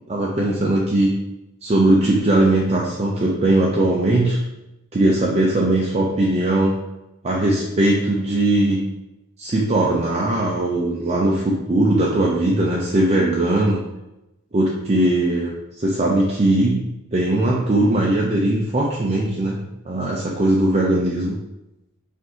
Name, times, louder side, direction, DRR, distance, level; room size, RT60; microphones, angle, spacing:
voice 1, 0.1-1.1 1.6-4.4 4.9-6.8 7.2-8.8 9.4-13.8 14.5-15.5 15.8-16.8 17.1-19.6 19.9-21.4, right 1 dB, 30° right, -3 dB, 0.4 m, -19 dB
4.7 x 2.6 x 3.7 m, 0.94 s
head